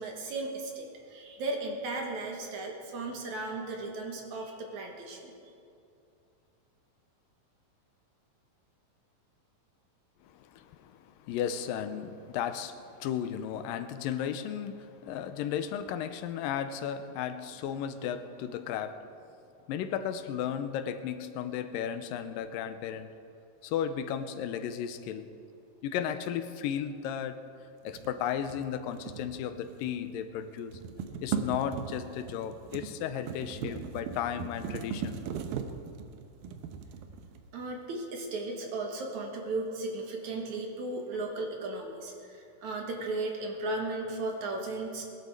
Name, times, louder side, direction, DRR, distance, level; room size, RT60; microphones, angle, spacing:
voice 1, 0.0-5.3 37.5-45.0, right 2 dB, 60° right, 2 dB, 2.7 m, -36 dB
voice 2, 10.2-19.0 19.7-23.1 23.6-25.3 25.8-27.4 27.8-30.8 31.2-35.2, left 9 dB, 85° left, 10 dB, 2.4 m, -34 dB
sound 1, 27.9-30.1 30.4-37.7, right 7 dB, 90° right, 2.7 m, -39 dB
20.0 x 12.0 x 4.7 m, 2.6 s
omnidirectional pair, 4.0 m